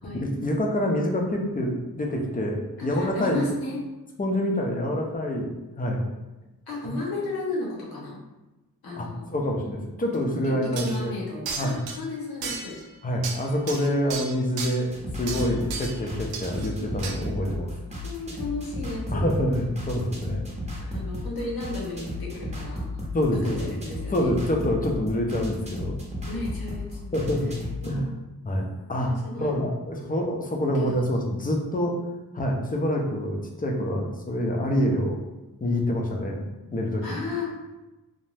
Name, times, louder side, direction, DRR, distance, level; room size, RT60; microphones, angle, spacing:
voice 1, 0.1-3.5 4.2-6.0 6.8-7.0 9.0-11.1 11.6-11.8 13.0-14.9 15.2-17.7 19.1-21.0 23.1-23.8 24.1-26.0 27.1-27.5 27.8-28.1 28.4-29.1 29.4-32.0 32.3-35.2 35.6-37.0, equal, 25° left, 1 dB, 0.5 m, -26 dB
voice 2, 2.8-3.8 6.7-8.2 8.8-9.3 10.3-12.8 18.0-19.3 20.9-22.9 23.4-24.3 26.3-27.1 27.8-28.2 29.0-29.5 30.7-31.0 37.0-37.5, left 2 dB, 85° left, -3 dB, 0.8 m, -34 dB
sound 1, 10.1-10.2 10.8-11.0 11.5-12.0 12.4-12.9 13.2-14.8 15.3-16.0 16.3-16.7 17.0-17.2, right 5 dB, 90° right, 0.5 m, -34 dB
sound 2, 14.9-28.0, left 2 dB, 20° right, 0.7 m, -35 dB
2.6 x 2.1 x 3.2 m, 1.1 s
cardioid pair, 70°, 36 cm